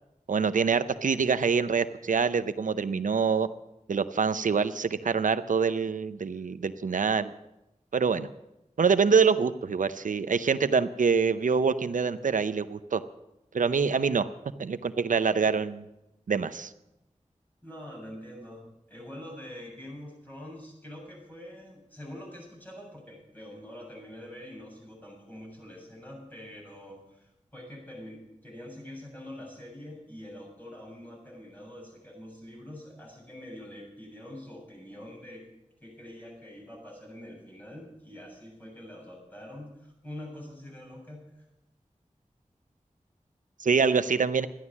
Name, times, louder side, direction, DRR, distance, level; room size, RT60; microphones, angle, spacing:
voice 1, 0.3-3.5 3.9-7.3 7.9-8.3 8.8-13.0 13.5-14.3 14.6-15.8 16.3-16.7 43.6-44.5, right 5 dB, 90° right, 12 dB, 0.6 m, -25 dB
voice 2, 17.6-18.6 18.9-35.5 35.8-41.3, left 1 dB, 15° left, -2 dB, 7.3 m, -45 dB
13.0 x 11.0 x 7.2 m, 0.89 s
wide cardioid pair, 50°, 13 cm